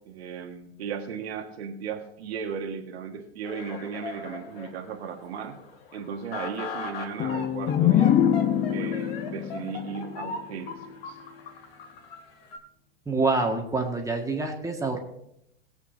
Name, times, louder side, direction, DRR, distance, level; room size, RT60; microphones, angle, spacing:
voice 1, 0.0-5.6 5.9-8.2 8.7-11.2, right 6 dB, 75° right, 4 dB, 1.6 m, -36 dB
sound 1, 3.4-12.6, left 4 dB, 65° left, 2.8 m, -40 dB
sound 2, 7.2-10.9, left 10 dB, 25° left, 0.6 m, -24 dB
voice 2, 13.0-15.0, right 3 dB, 10° right, 2 dB, 1.6 m, -26 dB
19.5 x 8.3 x 2.7 m, 0.78 s
hypercardioid pair, 105°, 32 cm